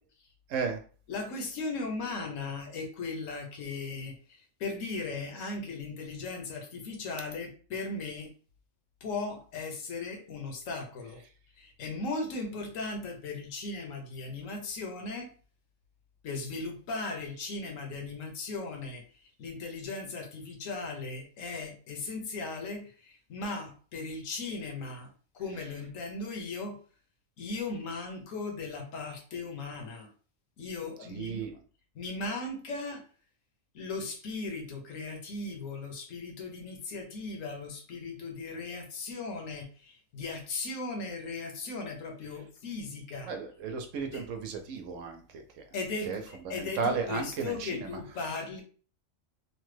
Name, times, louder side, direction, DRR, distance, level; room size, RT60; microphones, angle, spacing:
voice 1, 0.5-0.8 31.1-31.6 43.2-45.6 46.1-46.2 46.4-48.0, right 5 dB, 75° right, 5 dB, 1.0 m, -34 dB
voice 2, 1.1-8.3 9.0-11.2 11.6-15.3 16.2-25.1 25.3-26.8 27.4-30.1 30.6-31.4 31.9-33.0 33.7-43.3 44.1-44.3 45.7-48.6, left 3 dB, 75° left, 3 dB, 1.1 m, -37 dB
3.1 x 2.2 x 3.1 m, 0.40 s
omnidirectional pair, 1.4 m